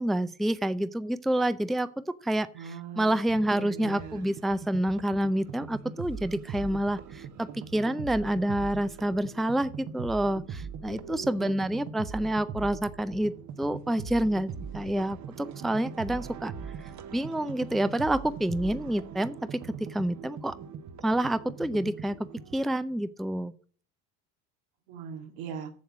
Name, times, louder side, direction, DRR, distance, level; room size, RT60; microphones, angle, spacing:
voice 1, 0.0-1.9 2.2-2.5 3.0-16.5 17.1-20.5 21.0-22.2 22.5-23.5, right 1 dB, ahead, 14 dB, 0.5 m, -28 dB
voice 2, 2.5-3.2 3.5-4.3 10.8-11.5 24.9-25.7, right 6 dB, 85° right, 5 dB, 2.1 m, -41 dB
Drum, 3.3-5.3, right 3 dB, 70° right, 3.1 m, -53 dB
sound 1, 3.8-22.6, right 6 dB, 45° right, 1.0 m, -41 dB
7.6 x 7.2 x 7.2 m, 0.43 s
supercardioid pair, 90°, 39 cm